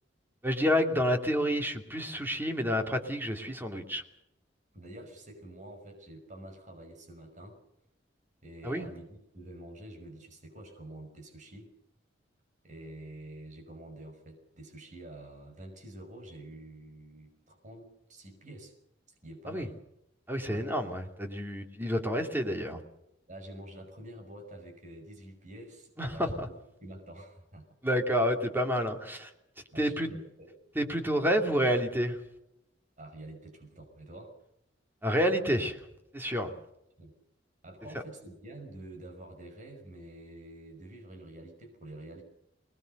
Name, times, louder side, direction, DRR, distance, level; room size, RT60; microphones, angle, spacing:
voice 1, 0.4-4.0 8.6-8.9 19.5-19.7 20.3-22.8 26.0-26.5 27.8-29.3 29.8-30.1 30.7-32.2 35.0-35.8 36.1-36.5 37.9-38.0, equal, 10° right, 4 dB, 2.7 m, -29 dB
voice 2, 4.7-7.6 8.4-11.7 12.6-18.7 19.2-19.7 20.5-20.7 23.3-26.3 26.8-27.6 29.7-30.5 33.0-34.4 37.0-37.1 37.6-42.2, right 1 dB, 40° right, 3 dB, 5.8 m, -47 dB
25.0 x 20.0 x 6.7 m, 0.83 s
head